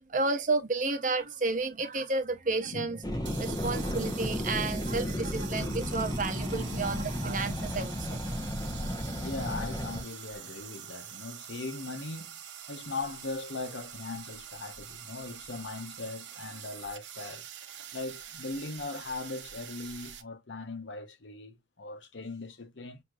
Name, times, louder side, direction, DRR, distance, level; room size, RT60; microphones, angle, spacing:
voice 1, 0.1-3.0 3.4-8.2, right 3 dB, 40° right, 0.9 m, -31 dB
voice 2, 2.6-3.1 9.2-12.4 12.7-17.4 17.9-23.0, left 3 dB, 80° left, 0.9 m, -39 dB
sound 1, 3.0-10.0, equal, 20° left, 0.9 m, -33 dB
sound 2, 3.2-20.2, right 9 dB, 80° right, 0.9 m, -45 dB
6.3 x 2.8 x 2.4 m
head